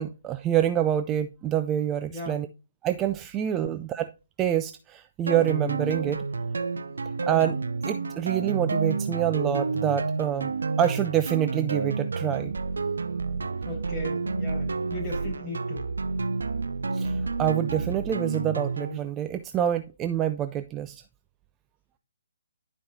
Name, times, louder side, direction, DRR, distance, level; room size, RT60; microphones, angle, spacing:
voice 1, 0.0-2.5 2.8-4.1 4.4-6.2 7.3-7.6 7.8-10.5 10.8-12.5 16.9-21.0, right 10 dB, 20° right, 0.4 m, -26 dB
voice 2, 2.1-2.4 3.6-3.7 13.6-15.8, left 2 dB, 10° left, 4.8 m, -37 dB
sound 1, 5.3-19.0, right 4 dB, 75° right, 0.5 m, -30 dB
11.0 x 5.1 x 2.7 m
figure-of-eight pair, 140°, 0 cm